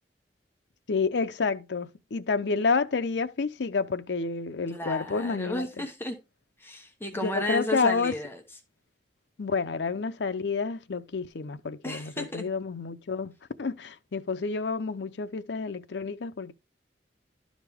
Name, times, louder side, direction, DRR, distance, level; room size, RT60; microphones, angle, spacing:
voice 1, 0.9-5.7 7.1-8.1 9.4-13.3 13.6-16.5, left 4 dB, 75° left, 0.6 m, -29 dB
voice 2, 4.7-6.2 6.6-8.4 11.8-12.5, left 1 dB, 15° left, 1.0 m, -33 dB
12.0 x 5.1 x 3.5 m
head